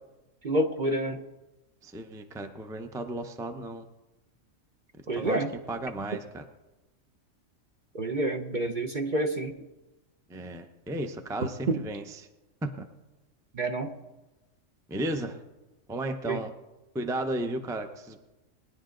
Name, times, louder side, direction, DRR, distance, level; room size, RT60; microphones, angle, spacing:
voice 1, 0.4-1.2 5.1-5.5 7.9-9.5 11.7-11.8 13.6-13.9 16.3-16.4, right 1 dB, 45° right, 5 dB, 0.8 m, -28 dB
voice 2, 1.8-3.9 5.1-6.4 10.3-12.3 12.6-12.8 14.9-15.4 15.9-16.5 16.9-18.2, right 1 dB, 5° right, 6 dB, 0.5 m, -34 dB
20.5 x 10.5 x 3.8 m, 1.1 s
omnidirectional pair, 1.4 m